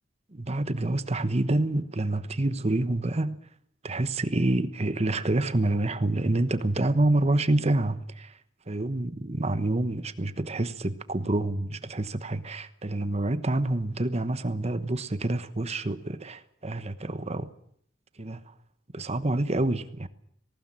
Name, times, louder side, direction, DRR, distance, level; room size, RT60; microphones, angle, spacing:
voice 1, 0.3-3.4 3.8-8.4 8.7-17.5 18.2-18.5 18.9-20.1, right 2 dB, 35° right, 1.1 m, -27 dB
19.0 x 19.0 x 8.9 m
head